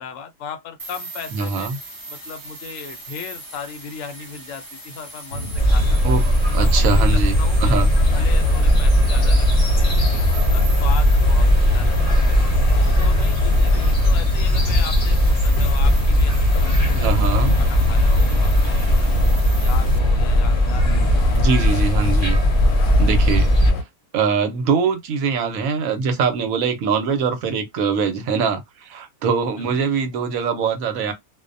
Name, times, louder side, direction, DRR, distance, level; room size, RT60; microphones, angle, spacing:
voice 1, 0.0-1.7 2.1-6.0 6.6-9.5 9.8-11.5 11.7-12.0 12.7-17.1 17.6-19.1 19.6-21.4 29.6-29.7, left 7 dB, 65° left, 0.8 m, -37 dB
sound 1, 0.8-20.0, right 2 dB, 25° right, 0.4 m, -38 dB
voice 2, 1.3-1.8 6.0-7.9 16.9-17.6 20.8-22.4 23.0-23.8 24.1-31.1, right 5 dB, 70° right, 1.0 m, -23 dB
sound 2, 5.3-23.8, left 1 dB, 90° left, 1.1 m, -27 dB
sound 3, 5.6-23.7, equal, 35° left, 0.7 m, -17 dB
2.5 x 2.1 x 2.5 m
omnidirectional pair, 1.6 m